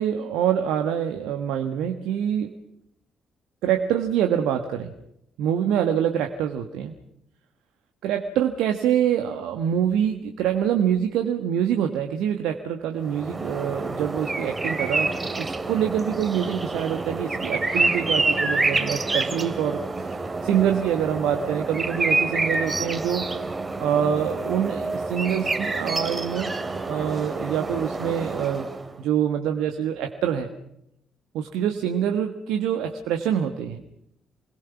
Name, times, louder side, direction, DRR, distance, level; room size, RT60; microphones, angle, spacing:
voice 1, 0.0-2.5 3.6-4.9 5.4-6.9 8.0-20.2 20.4-23.3 23.8-26.5 26.8-28.7 29.0-30.5 31.3-33.8, right 9 dB, 70° right, 5 dB, 1.5 m, -25 dB
sound 1, 13.0-28.9, right 3 dB, 25° right, 2.7 m, -27 dB
28.5 x 21.0 x 5.9 m, 0.77 s
figure-of-eight pair, 45°, 0 cm